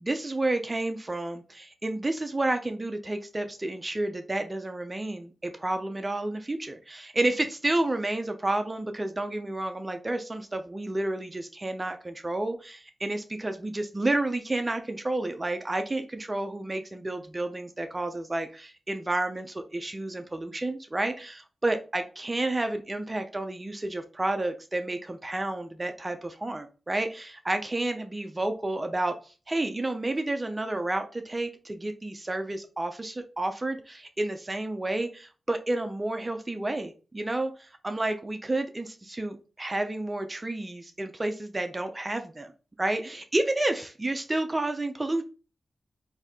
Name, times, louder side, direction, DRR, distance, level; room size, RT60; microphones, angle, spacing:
voice 1, 0.0-29.2 29.5-42.5 42.8-45.2, right 2 dB, 20° right, 7 dB, 0.5 m, -30 dB
4.0 x 2.7 x 3.5 m, 0.34 s
wide cardioid pair, 155°, 0 cm